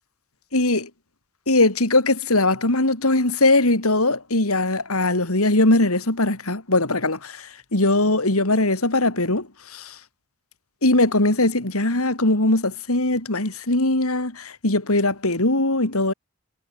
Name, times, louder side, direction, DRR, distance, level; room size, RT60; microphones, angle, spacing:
voice 1, 0.5-0.9 1.5-10.0 10.8-16.1, left 2 dB, 80° left, 3.9 m, -20 dB
head